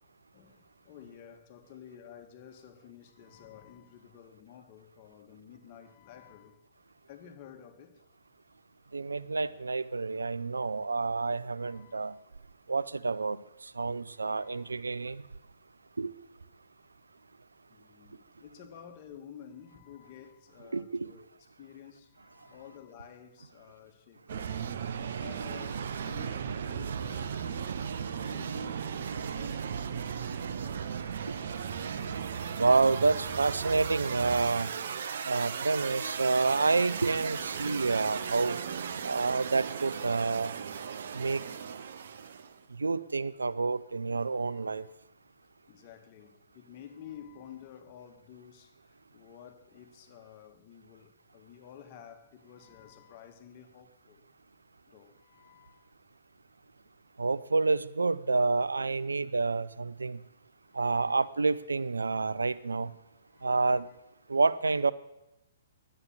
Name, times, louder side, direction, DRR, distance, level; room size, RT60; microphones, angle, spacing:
voice 1, 0.3-6.6 7.1-8.1 11.6-12.2 13.9-14.7 17.7-21.3 21.6-24.6 25.2-27.5 27.8-31.7 38.9-39.4 44.4-44.9 45.7-54.2 54.9-55.9 60.7-61.2 63.3-63.9, left 8 dB, 40° left, 1.6 m, -52 dB
voice 2, 8.9-12.1 12.7-13.4 13.8-15.2 16.0-16.1 20.7-21.1 31.3-31.4 32.5-34.7 35.3-38.6 39.0-40.6 41.1-41.4 42.8-44.9 57.2-60.2 60.7-62.9 63.4-63.9 64.3-64.9, right 3 dB, 90° right, 0.5 m, -28 dB
sound 1, 24.3-42.6, right 7 dB, 65° right, 0.9 m, -36 dB
11.0 x 8.9 x 7.4 m
hypercardioid pair, 130°, 0 cm